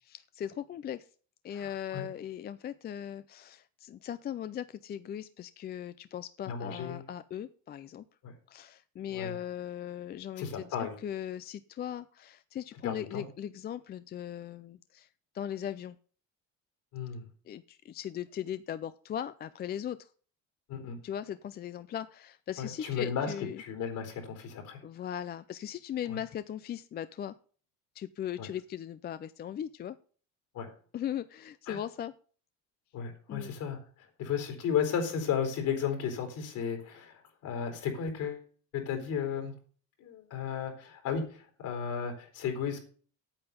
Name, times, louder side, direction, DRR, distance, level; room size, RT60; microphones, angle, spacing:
voice 1, 0.0-1.1 1.4-8.0 8.5-15.1 15.3-16.0 17.5-20.1 21.0-23.6 24.8-27.4 27.9-30.0 30.9-32.1 33.3-33.5, left 10 dB, 30° left, 14 dB, 0.4 m, -39 dB
voice 2, 1.5-2.1 6.5-7.0 8.2-8.3 9.1-9.3 10.4-10.9 12.8-13.3 16.9-17.3 20.7-21.0 22.6-24.8 26.1-26.2 28.4-28.5 30.5-30.7 31.7-31.8 32.9-38.4 38.7-39.5 40.0-42.8, left 7 dB, 65° left, 6 dB, 4.2 m, -34 dB
8.9 x 7.8 x 6.9 m, 0.42 s
cardioid pair, 135°, 33 cm